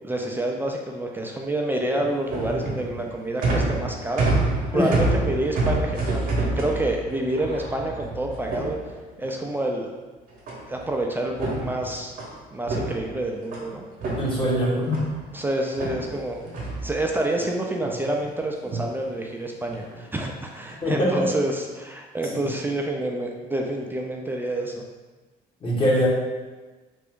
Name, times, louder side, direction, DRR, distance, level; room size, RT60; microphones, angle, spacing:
voice 1, 0.0-4.3 4.7-8.8 9.2-9.9 10.7-12.1 12.5-13.8 14.6-14.8 15.3-16.4 16.8-24.9, right 1 dB, 10° right, 1 dB, 0.4 m, -28 dB
sound 1, 1.8-9.3 10.5-10.9 11.3-13.7 14.0-15.3 15.8-17.4 17.8-18.3 18.6-19.0 19.7-20.0 20.6-20.9, right 2 dB, 55° right, 0.9 m, -28 dB
voice 2, 14.2-15.1 20.8-21.3 22.4-22.5 25.6-26.1, equal, 30° left, -5 dB, 1.1 m, -22 dB
3.3 x 2.5 x 3.6 m, 1.3 s
cardioid pair, 110°, 17 cm